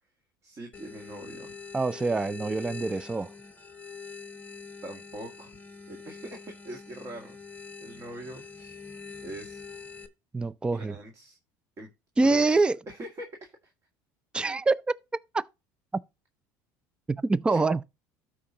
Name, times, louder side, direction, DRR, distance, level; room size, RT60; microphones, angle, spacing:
voice 1, 0.4-1.6 4.8-5.6 5.9-8.8 9.2-9.6 10.7-11.4 11.8-11.9 12.2-13.7 17.5-17.6, right 1 dB, 40° right, 2.0 m, -43 dB
sound 1, 0.7-10.1, left 5 dB, 20° left, 1.0 m, -44 dB
voice 2, 1.7-3.3 10.3-10.9 12.2-12.8 14.3-15.0 15.3-15.4 17.1-17.8, right 3 dB, 10° right, 0.4 m, -25 dB
13.0 x 4.8 x 2.8 m
supercardioid pair, 105°, 8 cm